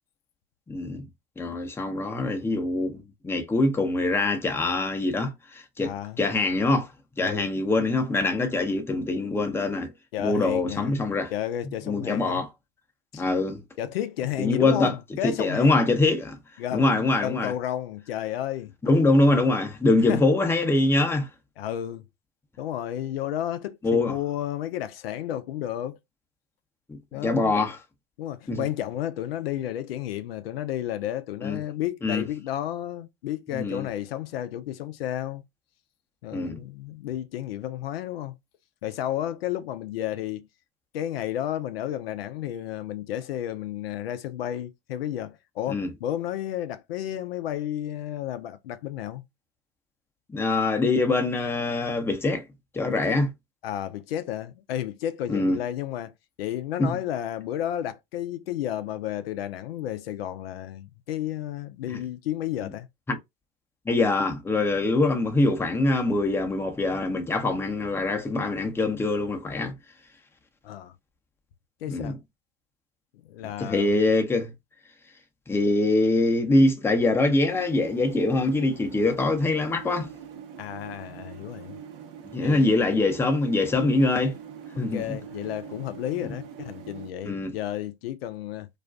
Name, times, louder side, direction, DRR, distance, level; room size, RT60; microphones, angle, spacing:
voice 1, 0.7-1.0 1.4-6.9 7.2-9.9 10.2-11.3 11.9-12.5 13.1-13.6 14.4-14.9 15.2-16.4 16.7-17.5 18.8-21.3 23.8-24.2 26.9-27.8 28.5-28.7 31.4-31.6 32.0-32.2 33.5-33.9 36.3-36.6 45.7-45.9 50.3-52.4 52.7-53.3 55.3-55.6 56.8-57.0 61.9-62.0 62.6-62.7 63.1-63.2 63.9-69.7 71.9-72.2 73.6-74.5 75.5-80.1 82.3-84.4 84.8-85.2 87.2-87.5, left 2 dB, 10° left, 0.6 m, -24 dB
voice 2, 5.8-6.2 7.2-7.5 10.1-10.9 11.3-12.4 13.1-13.2 13.8-15.9 16.6-18.7 20.1-20.3 21.6-22.0 22.6-26.0 27.1-27.5 28.2-35.4 36.2-38.3 38.8-40.5 40.9-49.2 53.1-53.2 53.6-62.9 70.6-70.9 71.8-72.2 73.3-74.0 80.6-81.8 82.4-82.8 84.9-88.7, left 11 dB, 75° left, 0.4 m, -32 dB
sound 1, 77.5-87.1, right 8 dB, 65° right, 0.8 m, -43 dB
2.4 x 2.2 x 2.4 m
hypercardioid pair, 85°, 30 cm